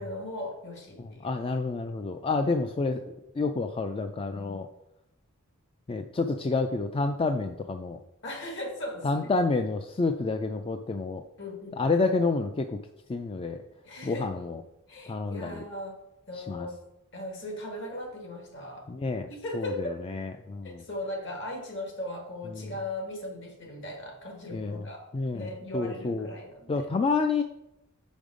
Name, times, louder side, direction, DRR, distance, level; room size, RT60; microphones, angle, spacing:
voice 1, 0.0-1.4 4.3-4.6 8.2-9.3 11.4-12.0 13.8-14.3 14.9-16.0 16.3-18.9 19.3-20.1 20.6-25.1 25.3-26.9, left 1 dB, 60° left, 2 dB, 1.7 m, -38 dB
voice 2, 1.0-3.0 3.4-4.7 5.9-8.0 9.0-11.2 11.8-12.8 13.1-13.6 14.0-14.6 15.1-15.6 16.3-16.7 18.9-19.3 19.5-20.8 22.5-22.7 24.5-24.9 25.1-25.5 25.7-26.3 26.7-27.4, left 3 dB, 25° left, 6 dB, 0.3 m, -29 dB
6.2 x 5.3 x 5.0 m, 0.87 s
head